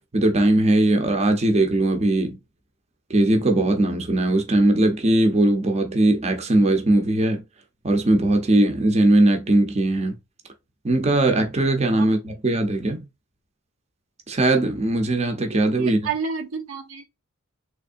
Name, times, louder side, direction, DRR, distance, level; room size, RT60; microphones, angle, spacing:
voice 1, 0.1-2.4 3.1-7.4 7.8-10.2 10.8-13.1 14.3-16.1, right 1 dB, 30° right, 0.6 m, -20 dB
voice 2, 15.8-17.0, right 5 dB, 80° right, 0.7 m, -30 dB
3.5 x 3.2 x 2.5 m
head